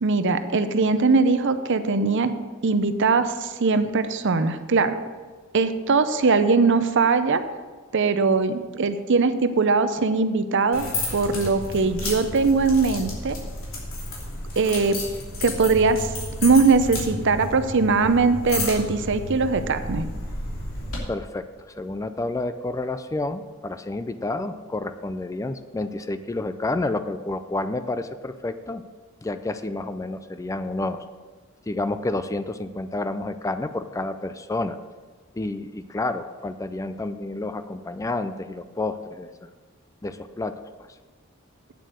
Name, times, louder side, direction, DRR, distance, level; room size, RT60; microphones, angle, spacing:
voice 1, 0.0-2.3 2.6-5.0 5.5-7.4 7.9-13.3 14.6-15.0 15.4-16.1 16.4-20.1, right 4 dB, 60° right, 10 dB, 0.7 m, -21 dB
sound 1, 10.7-21.0, left 1 dB, 80° left, 2.9 m, -32 dB
voice 2, 21.1-21.4 21.8-28.8 29.2-31.0 31.7-34.8 35.4-39.5 40.0-40.6, left 2 dB, 15° left, 11 dB, 0.4 m, -29 dB
8.4 x 7.7 x 6.3 m, 1.4 s
head